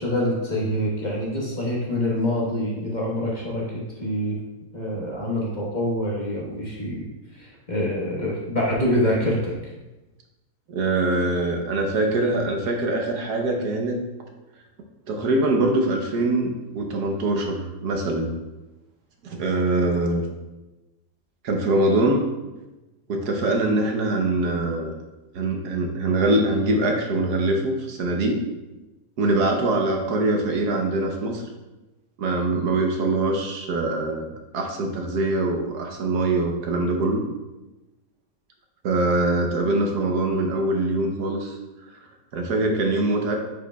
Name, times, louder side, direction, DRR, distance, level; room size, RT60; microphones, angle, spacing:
voice 1, 0.0-3.6 4.0-4.4 4.7-7.0 7.3-9.5, left 1 dB, 30° left, -5 dB, 1.3 m, -25 dB
voice 2, 10.7-14.0 15.1-18.3 19.2-20.2 21.4-22.2 23.1-24.9 25.3-28.4 29.2-31.4 32.2-34.3 34.5-37.2 38.8-41.6 41.9-42.0 42.3-43.4, right 2 dB, 70° right, 2 dB, 1.4 m, -23 dB
9.6 x 4.9 x 2.3 m, 1.1 s
omnidirectional pair, 1.8 m